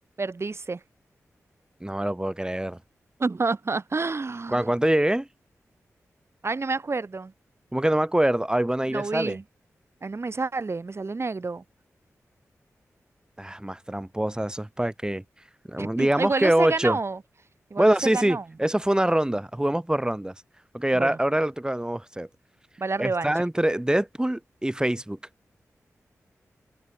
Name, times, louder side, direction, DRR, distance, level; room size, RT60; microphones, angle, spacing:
voice 1, 0.2-0.8 3.2-4.7 6.4-7.3 8.9-9.4 10.0-11.6 15.8-17.2 17.7-18.4 20.9-21.2 22.8-23.4, right 3 dB, 50° right, 2.9 m, -29 dB
voice 2, 1.8-2.8 4.5-5.3 7.7-9.4 13.4-15.2 15.7-17.0 17.8-20.3 20.7-22.3 23.0-25.2, right 1 dB, 15° right, 1.3 m, -24 dB
cardioid pair, 40°, 6 cm